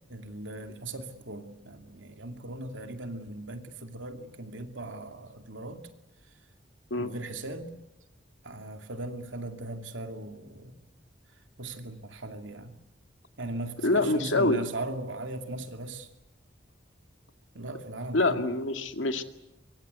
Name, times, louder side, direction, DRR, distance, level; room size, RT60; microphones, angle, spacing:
voice 1, 0.1-5.8 7.0-7.7 8.4-10.8 11.6-12.8 13.4-16.1 17.5-18.5, right 2 dB, 85° right, 6 dB, 2.6 m, -38 dB
voice 2, 13.8-14.6 18.1-19.2, left 2 dB, 85° left, 7 dB, 2.1 m, -25 dB
24.5 x 24.0 x 8.2 m, 0.89 s
head